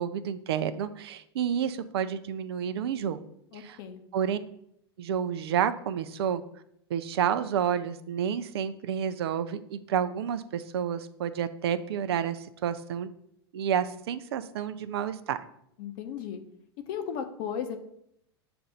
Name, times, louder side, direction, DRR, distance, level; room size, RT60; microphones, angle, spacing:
voice 1, 0.0-3.2 3.5-3.8 4.1-4.4 5.0-6.4 6.9-13.1 13.5-15.4, right 8 dB, 70° right, 12 dB, 0.5 m, -30 dB
voice 2, 3.5-4.0 15.8-16.4 16.9-17.8, left 8 dB, 60° left, 6 dB, 0.9 m, -35 dB
6.7 x 2.5 x 5.5 m, 0.74 s
hypercardioid pair, 90°, 14 cm